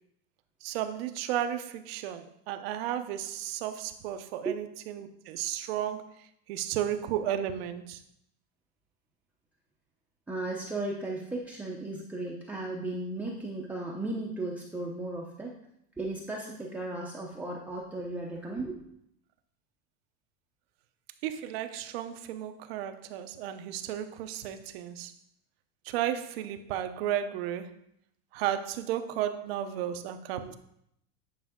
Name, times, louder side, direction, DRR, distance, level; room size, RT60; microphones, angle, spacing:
voice 1, 0.6-8.0 21.2-25.1 25.8-27.7 28.3-30.6, right 11 dB, 80° right, 0.7 m, -34 dB
voice 2, 10.3-15.5 16.0-18.8 30.4-30.5, right 2 dB, 5° right, 0.6 m, -35 dB
9.6 x 5.0 x 3.6 m
supercardioid pair, 155°, 30 cm